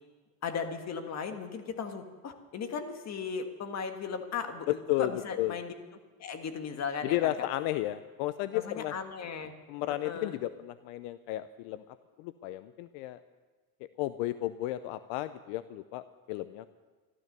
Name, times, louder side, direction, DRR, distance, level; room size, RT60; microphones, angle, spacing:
voice 1, 0.4-5.7 6.2-7.5 8.5-9.5 10.0-10.3, left 6 dB, 45° left, 7 dB, 1.7 m, -37 dB
voice 2, 4.7-5.1 5.4-5.6 7.0-8.9 9.7-11.8 12.2-13.2 14.0-16.7, left 15 dB, 80° left, 13 dB, 0.6 m, -33 dB
14.0 x 12.5 x 6.7 m, 1.3 s
cardioid pair, 115°, 38 cm